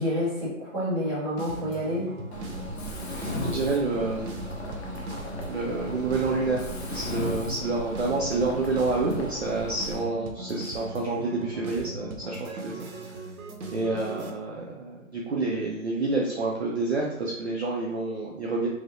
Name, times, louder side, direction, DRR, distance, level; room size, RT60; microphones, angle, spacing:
voice 1, 0.0-2.1, equal, 20° right, -11 dB, 1.0 m, -28 dB
sound 1, 1.4-14.3, right 2 dB, 80° right, 0.7 m, -39 dB
Mechanisms, 2.3-9.9, left 1 dB, 50° left, 0.6 m, -36 dB
voice 2, 3.3-4.4 5.5-6.7 6.9-13.2 13.7-18.7, right 3 dB, 50° right, -3 dB, 0.5 m, -28 dB
3.1 x 2.7 x 2.5 m, 0.85 s
hypercardioid pair, 180°, 43 cm